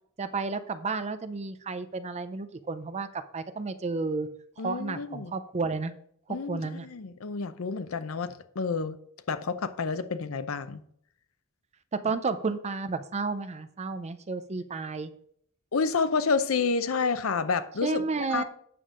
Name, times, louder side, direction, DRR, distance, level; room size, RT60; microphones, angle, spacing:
voice 1, 0.2-4.3 4.6-5.9 6.3-6.9 11.9-15.1 17.8-18.4, right 4 dB, 30° right, 0.5 m, -32 dB
voice 2, 4.6-5.3 6.3-9.0 9.3-10.8 15.7-18.4, left 5 dB, 75° left, 0.6 m, -29 dB
8.4 x 6.8 x 3.7 m
head